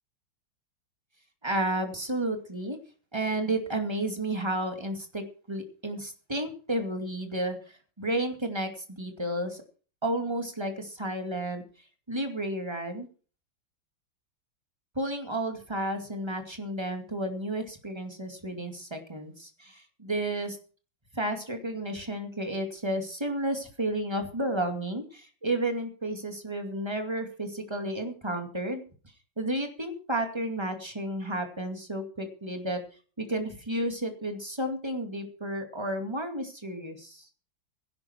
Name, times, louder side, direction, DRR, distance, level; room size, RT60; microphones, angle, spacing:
voice 1, 1.4-2.8 3.1-9.6 10.0-11.6 12.1-13.1 14.9-20.6 21.1-28.8 29.4-32.8 33.2-37.3, right 1 dB, 15° right, 5 dB, 2.4 m, -32 dB
15.5 x 11.5 x 4.5 m, 0.39 s
omnidirectional pair, 2.1 m